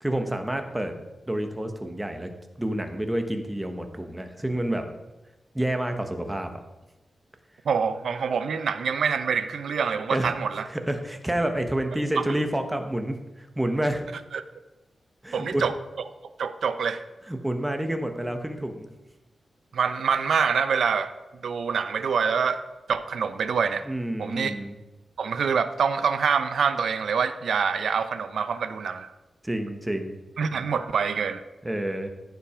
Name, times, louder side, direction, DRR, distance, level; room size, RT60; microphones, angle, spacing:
voice 1, 0.0-0.9 1.3-2.3 2.6-4.9 5.5-6.5 10.1-10.3 10.6-14.1 15.2-15.7 17.3-18.9 23.9-24.8 29.4-30.2 31.6-32.1, right 1 dB, 10° right, 6 dB, 1.1 m, -29 dB
voice 2, 7.6-10.7 12.2-12.3 14.3-14.4 15.3-15.7 16.4-17.0 19.7-21.1 21.4-22.6 22.9-23.9 24.2-24.5 25.2-29.1 30.4-31.4, right 6 dB, 80° right, 11 dB, 0.6 m, -25 dB
14.5 x 5.8 x 5.0 m, 1.1 s
wide cardioid pair, 150°, 0 cm